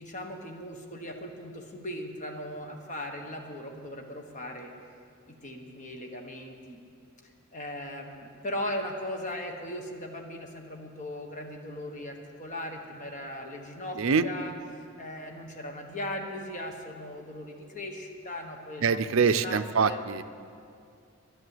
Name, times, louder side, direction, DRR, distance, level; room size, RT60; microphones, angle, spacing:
voice 1, 0.0-4.7 5.3-6.8 7.5-20.0, left 1 dB, 35° left, 2 dB, 1.3 m, -38 dB
voice 2, 13.9-14.3 18.8-20.2, right 5 dB, 65° right, 11 dB, 0.5 m, -24 dB
11.0 x 11.0 x 7.8 m, 2.3 s
head